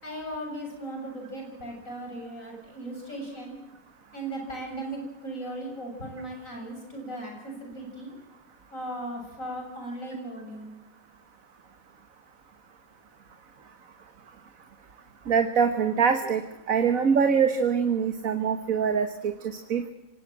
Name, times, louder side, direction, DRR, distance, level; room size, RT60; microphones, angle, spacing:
voice 1, 0.0-3.5 4.1-8.1 8.7-10.7, right 1 dB, 65° left, 2 dB, 7.8 m, -37 dB
voice 2, 15.3-16.4 16.7-19.9, right 6 dB, 70° right, 8 dB, 1.8 m, -24 dB
25.5 x 19.0 x 7.6 m, 0.96 s
omnidirectional pair, 1.5 m